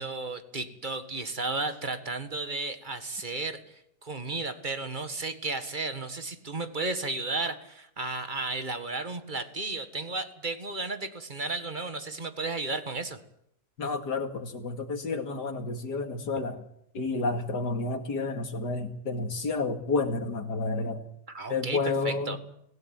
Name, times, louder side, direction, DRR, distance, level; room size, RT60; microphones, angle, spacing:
voice 1, 0.0-13.2 21.3-22.4, right 3 dB, 30° right, 9 dB, 1.8 m, -34 dB
voice 2, 13.8-16.6 16.9-21.0 21.5-22.4, left 3 dB, 70° left, 6 dB, 2.8 m, -30 dB
25.0 x 17.5 x 9.0 m, 0.76 s
omnidirectional pair, 1.9 m